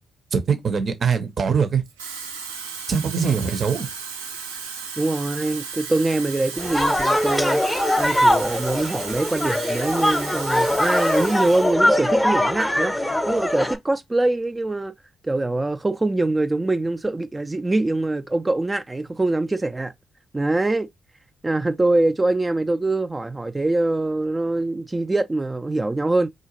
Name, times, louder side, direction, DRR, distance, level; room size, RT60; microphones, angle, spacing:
voice 1, 0.3-1.8 2.9-3.9, right 6 dB, 50° right, 0.7 m, -22 dB
Water tap faucet / Fill (with liquid), 1.8-11.8 12.1-12.4, right 5 dB, 90° right, 0.5 m, -35 dB
voice 2, 5.0-12.9 13.3-14.9 15.2-19.9 20.3-20.9 21.4-26.3, right 2 dB, 20° right, 0.4 m, -23 dB
sound 1, 6.6-13.8, left 1 dB, 15° left, 0.8 m, -22 dB
3.8 x 2.4 x 2.9 m
hypercardioid pair, 40°, 0 cm